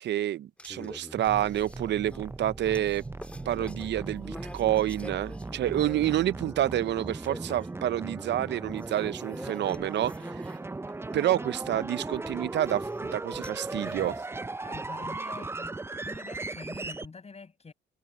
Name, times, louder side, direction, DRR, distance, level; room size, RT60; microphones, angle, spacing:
voice 1, 0.0-3.0 3.5-10.6 11.1-14.1, right 12 dB, 65° right, 0.6 m, -28 dB
sound 1, 0.6-6.3 6.6-6.7 7.2-7.7 8.7-11.1 11.4-14.2, left 1 dB, 5° left, 2.1 m, -46 dB
sound 2, 1.2-17.1, right 3 dB, 10° right, 0.5 m, -38 dB
voice 2, 14.6-15.8 16.0-17.7, left 4 dB, 30° left, 6.9 m, -45 dB
cardioid pair, 90°, 20 cm